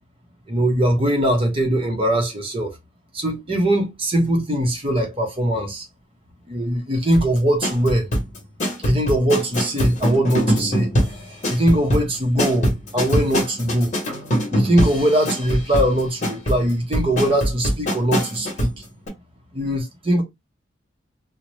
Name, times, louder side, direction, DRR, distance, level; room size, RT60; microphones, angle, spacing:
voice 1, 0.5-2.7 3.1-5.8 6.5-8.1 8.8-10.9 11.5-13.9 14.5-18.7 19.5-20.2, right 1 dB, 25° right, 0.7 m, -21 dB
sound 1, 7.1-18.8 19.1-19.2, equal, 40° left, 1.0 m, -23 dB
2.6 x 2.0 x 3.1 m
head